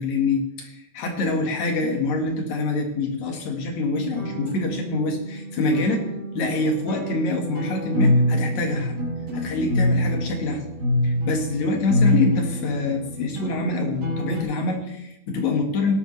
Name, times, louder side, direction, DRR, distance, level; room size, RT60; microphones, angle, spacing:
voice 1, 0.0-6.0 6.3-9.0 9.3-10.6 11.0-15.9, left 3 dB, 60° left, 2 dB, 2.9 m, -25 dB
sound 1, 4.0-14.4, left 1 dB, 55° right, 4.7 m, -26 dB
17.0 x 12.5 x 3.3 m, 0.84 s
omnidirectional pair, 3.9 m